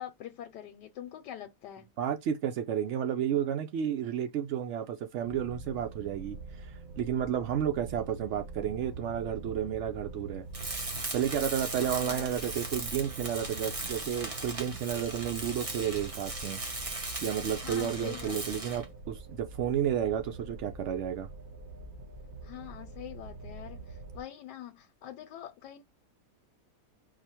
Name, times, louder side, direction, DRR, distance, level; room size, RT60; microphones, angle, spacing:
voice 1, 0.0-1.9 11.8-12.3 17.6-18.6 22.4-25.8, left 11 dB, 80° left, 1.3 m, -44 dB
voice 2, 2.0-10.4 11.1-16.6 17.2-21.3, right 9 dB, 90° right, 0.6 m, -32 dB
sound 1, 5.2-24.2, right 3 dB, 55° right, 1.6 m, -45 dB
Tools, 10.5-18.9, right 2 dB, 30° right, 0.6 m, -38 dB
4.8 x 2.1 x 4.3 m
omnidirectional pair, 1.8 m